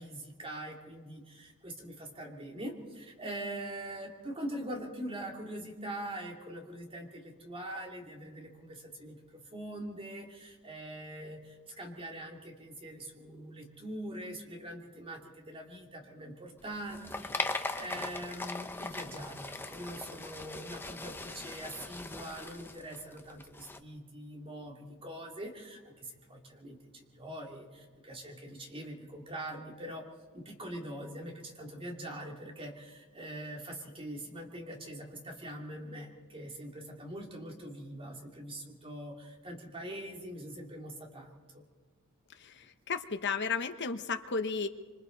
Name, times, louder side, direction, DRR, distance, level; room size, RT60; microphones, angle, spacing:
voice 1, 0.0-30.0 30.3-41.6, right 1 dB, 25° right, 1 dB, 2.9 m, -43 dB
sound 1, 16.6-23.8, left 2 dB, 10° left, 0.9 m, -40 dB
voice 2, 42.4-44.7, left 5 dB, 50° left, 8 dB, 1.1 m, -34 dB
26.5 x 26.0 x 4.0 m, 1.4 s
head